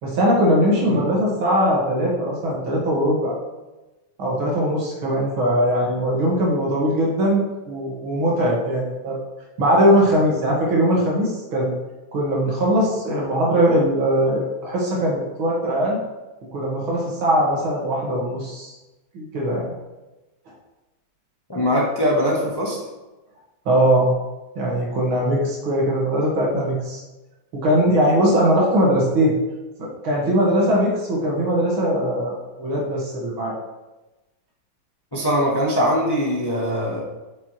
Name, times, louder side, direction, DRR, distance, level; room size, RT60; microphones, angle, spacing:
voice 1, 0.0-3.3 4.2-9.2 9.6-11.7 12.1-16.0 16.5-18.7 19.1-19.7 23.7-24.1 24.6-27.0 27.5-29.3 29.8-33.6, equal, 80° right, -3 dB, 2.6 m, -20 dB
voice 2, 21.5-22.8 35.1-37.0, equal, 20° left, -3 dB, 0.7 m, -21 dB
8.0 x 5.9 x 3.1 m, 1.1 s
omnidirectional pair, 2.2 m